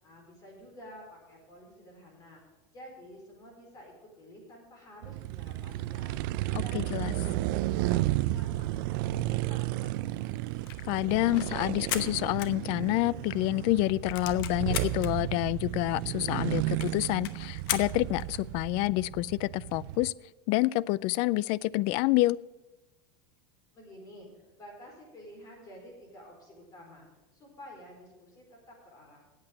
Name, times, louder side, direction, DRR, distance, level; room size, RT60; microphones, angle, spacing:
voice 1, 0.0-2.4 2.7-6.2 6.6-10.4 23.7-27.1 27.3-29.2, equal, 30° left, 0 dB, 4.4 m, -50 dB
sound 1, 5.0-20.1, right 16 dB, 70° right, 0.4 m, -33 dB
voice 2, 6.5-7.1 10.9-20.1 20.5-22.4, left 18 dB, 55° left, 23 dB, 0.3 m, -28 dB
sound 2, 10.5-13.2 13.5-13.6 13.9-15.1 15.7-15.8 16.0-16.1 16.4-16.5 16.8-18.5, left 12 dB, 75° left, 0.9 m, -37 dB
8.7 x 8.2 x 8.8 m, 1.1 s
supercardioid pair, 130°, 12 cm